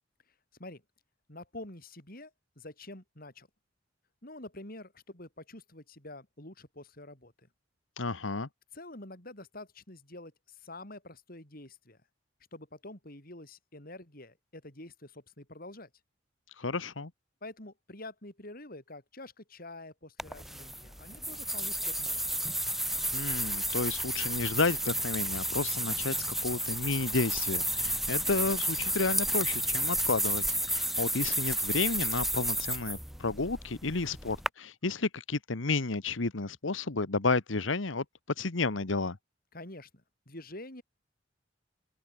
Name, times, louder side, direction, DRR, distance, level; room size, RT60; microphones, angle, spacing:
voice 1, 1.3-2.3 2.6-3.5 4.2-7.5 8.7-12.0 12.5-15.9 17.4-22.3 39.5-40.8, left 2 dB, 50° left, 5.4 m, -47 dB
voice 2, 8.0-8.5 16.6-17.1 23.1-38.0 38.4-39.2, left 3 dB, 80° left, 1.3 m, -31 dB
sound 1, 20.2-34.5, right 1 dB, ahead, 1.2 m, -32 dB
open air
head